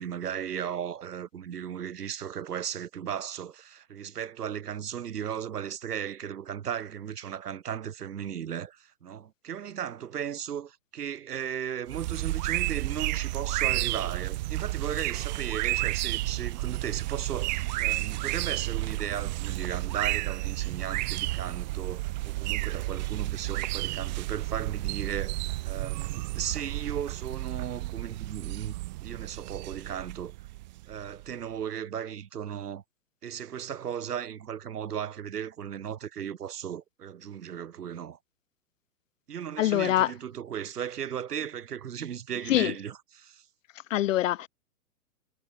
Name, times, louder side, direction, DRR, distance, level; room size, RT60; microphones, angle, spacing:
voice 1, 0.0-25.4 25.6-28.7 29.0-30.3 30.9-32.8 33.2-38.2 39.3-43.5, right 9 dB, 75° right, 1.5 m, -36 dB
sound 1, 11.9-31.3, right 19 dB, 30° right, 0.6 m, -32 dB
voice 2, 39.6-40.1 42.5-42.7 43.9-44.5, left 14 dB, 55° left, 0.5 m, -24 dB
hypercardioid pair, 125°, 46 cm